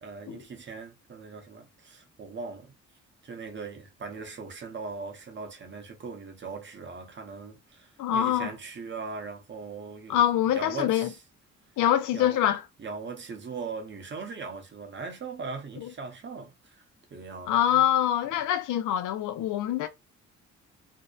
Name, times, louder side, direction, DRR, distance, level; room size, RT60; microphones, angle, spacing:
voice 1, 0.0-2.7 3.2-10.2 10.5-11.2 12.1-12.4 12.8-16.8 17.1-17.8 18.3-18.5, right 4 dB, 40° right, 0.8 m, -40 dB
voice 2, 8.0-8.5 10.1-11.1 11.8-12.6 17.5-19.9, left 11 dB, 80° left, 0.5 m, -24 dB
2.6 x 2.1 x 2.3 m
cardioid pair, 90°, 30 cm